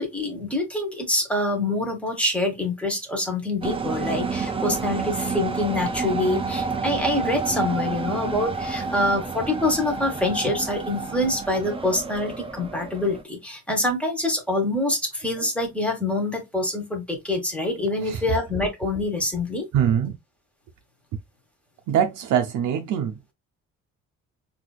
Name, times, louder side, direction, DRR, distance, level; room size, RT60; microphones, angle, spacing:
voice 1, 0.0-19.7, left 2 dB, 5° left, 1.3 m, -25 dB
sound 1, 3.6-13.2, right 4 dB, 20° right, 0.5 m, -29 dB
voice 2, 19.7-20.2 21.9-23.2, right 9 dB, 75° right, 0.6 m, -23 dB
4.1 x 2.8 x 2.3 m
cardioid pair, 90°, 30 cm